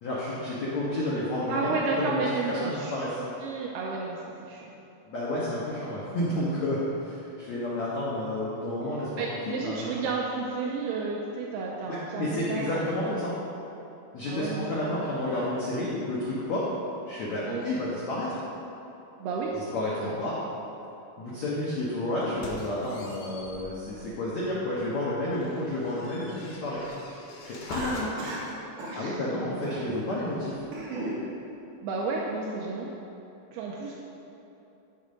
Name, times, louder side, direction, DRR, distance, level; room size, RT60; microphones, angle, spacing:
voice 1, 0.0-2.2 2.5-3.1 5.0-9.2 9.6-9.9 11.9-13.3 14.1-16.7 17.0-18.4 19.7-20.4 21.2-26.8 27.4-28.2 28.9-30.7, left 1 dB, 90° left, -8 dB, 1.5 m, -31 dB
voice 2, 1.5-4.7 8.9-13.1 14.3-15.2 17.5-17.6 19.2-19.6 20.0-20.2 28.9-29.4 30.5-31.1 31.8-32.9 33.5-33.9, right 4 dB, 85° right, -2 dB, 2.2 m, -32 dB
sound 1, 22.2-24.3 24.8-24.9 25.3-28.1, left 2 dB, 60° left, 2.9 m, -44 dB
Cough, 27.7-28.5 28.8-29.0 29.6-30.0 30.5-31.2, right 1 dB, 50° right, 3.1 m, -35 dB
15.0 x 5.5 x 5.3 m, 2.9 s
omnidirectional pair, 5.7 m